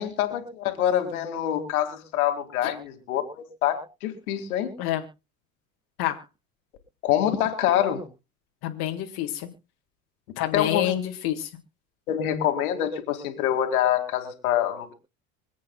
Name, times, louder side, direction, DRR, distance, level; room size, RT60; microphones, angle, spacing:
voice 1, 0.0-4.7 7.0-8.1 10.5-10.9 12.1-14.9, left 11 dB, 85° left, 6 dB, 2.3 m, -25 dB
voice 2, 8.6-9.5 10.4-11.5, left 12 dB, 60° left, 3 dB, 1.8 m, -27 dB
25.5 x 8.5 x 2.3 m, 0.28 s
hypercardioid pair, 75°, 42 cm